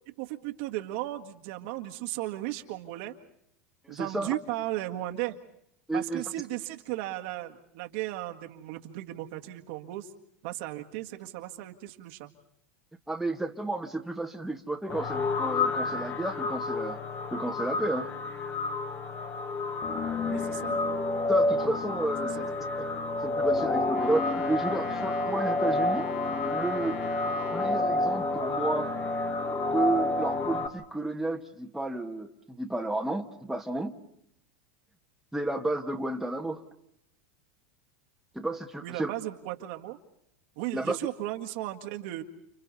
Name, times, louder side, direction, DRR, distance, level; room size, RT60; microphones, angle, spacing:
voice 1, 0.2-3.2 3.9-5.4 5.9-10.1 10.4-12.3 20.2-20.8 22.4-22.5 38.8-40.0 40.6-42.2, right 16 dB, 65° right, 4 dB, 1.9 m, -36 dB
voice 2, 3.8-4.3 5.9-6.2 13.1-17.0 17.3-18.1 21.3-22.5 22.8-22.9 23.2-26.1 26.5-27.0 27.5-28.9 29.7-33.9 35.3-36.6 38.3-39.1 40.7-41.0, right 2 dB, 5° right, 3 dB, 1.7 m, -32 dB
sound 1, 14.9-30.7, left 2 dB, 35° left, 2.3 m, -29 dB
Brass instrument, 23.9-27.9, left 6 dB, 65° left, 2.7 m, -42 dB
30.0 x 29.5 x 4.2 m, 0.74 s
hypercardioid pair, 110°, 7 cm